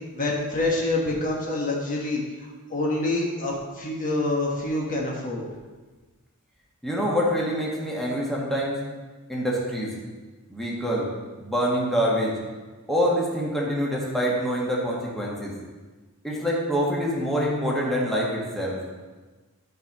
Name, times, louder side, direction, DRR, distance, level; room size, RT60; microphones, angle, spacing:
voice 1, 0.1-2.2 2.7-5.5, left 2 dB, 40° left, -2 dB, 1.5 m, -26 dB
voice 2, 6.8-8.7 9.3-9.9 10.5-11.1 11.4-12.3 12.9-15.5 16.2-18.7, equal, ahead, -5 dB, 1.7 m, -25 dB
12.0 x 5.2 x 5.3 m, 1.3 s
head